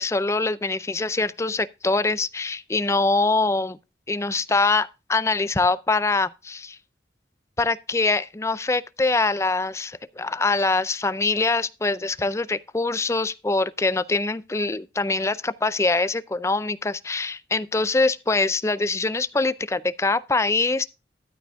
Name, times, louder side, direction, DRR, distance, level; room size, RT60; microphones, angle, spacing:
voice 1, 0.0-3.8 4.1-6.8 7.6-20.8, left 3 dB, 15° left, 0.4 m, -24 dB
13.0 x 9.4 x 2.3 m
head